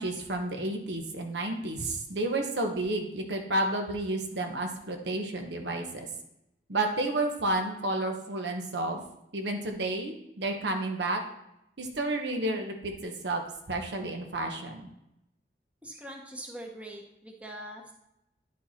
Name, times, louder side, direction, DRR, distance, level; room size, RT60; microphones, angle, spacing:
voice 1, 0.0-6.1 6.7-9.0 9.3-11.2 11.8-13.4 13.7-14.9, right 2 dB, 70° right, 3 dB, 1.1 m, -31 dB
voice 2, 15.8-17.9, right 1 dB, 5° right, 1 dB, 1.0 m, -43 dB
10.5 x 5.4 x 4.3 m, 0.84 s
head